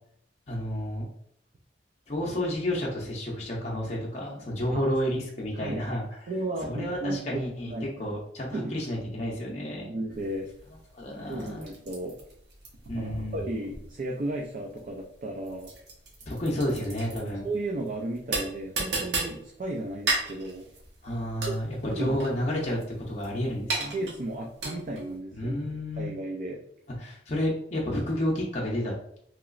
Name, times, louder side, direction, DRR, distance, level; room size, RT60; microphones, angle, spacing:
voice 1, 0.5-1.1 2.1-6.0 6.6-7.7 8.0-9.9 10.9-11.7 12.9-13.4 16.3-17.5 21.0-21.7 22.0-22.8 23.1-24.0 25.4-26.1 27.0-29.2, left 1 dB, 35° left, -3 dB, 0.5 m, -30 dB
voice 2, 6.3-7.9 8.5-8.7 9.9-10.5 11.2-12.2 12.9-15.7 17.2-20.7 21.5-21.6 21.9-22.1 23.9-25.6 26.0-26.6, right 2 dB, 45° right, 0 dB, 0.4 m, -34 dB
sound 1, 10.1-25.2, right 3 dB, 70° right, 0.9 m, -35 dB
3.0 x 2.9 x 2.4 m, 0.71 s
head